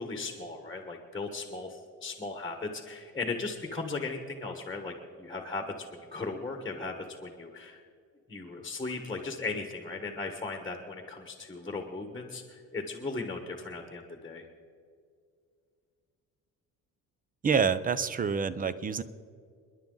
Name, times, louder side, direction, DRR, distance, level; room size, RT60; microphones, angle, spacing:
voice 1, 0.0-5.9 6.1-7.8 8.3-14.4, left 3 dB, 10° left, 4 dB, 1.5 m, -37 dB
voice 2, 17.4-19.0, right 6 dB, 25° right, 15 dB, 0.7 m, -27 dB
30.0 x 11.0 x 3.9 m, 2.2 s
cardioid pair, 135°, 34 cm